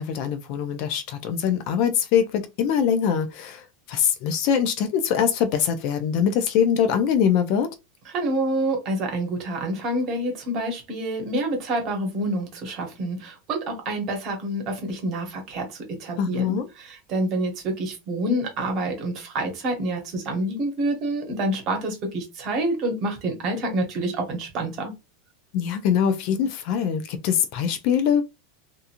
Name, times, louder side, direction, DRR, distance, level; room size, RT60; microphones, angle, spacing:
voice 1, 0.0-3.6 3.9-7.7 16.2-16.7 25.5-28.2, left 8 dB, 40° left, 0.3 m, -23 dB
voice 2, 8.1-24.9, right 1 dB, 30° right, 0.9 m, -27 dB
2.8 x 2.4 x 2.5 m
supercardioid pair, 175°, 0 cm